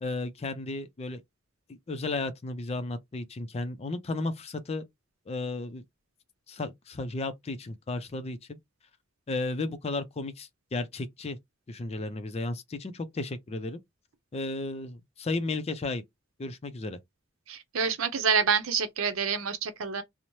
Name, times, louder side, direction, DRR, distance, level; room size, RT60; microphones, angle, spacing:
voice 1, 0.0-1.2 1.7-4.8 5.3-5.8 6.5-8.6 9.3-11.4 11.7-13.8 14.3-16.0 16.4-17.0, left 2 dB, 30° left, 0.4 m, -34 dB
voice 2, 17.5-20.0, right 6 dB, 85° right, 0.6 m, -27 dB
3.0 x 2.0 x 2.6 m
head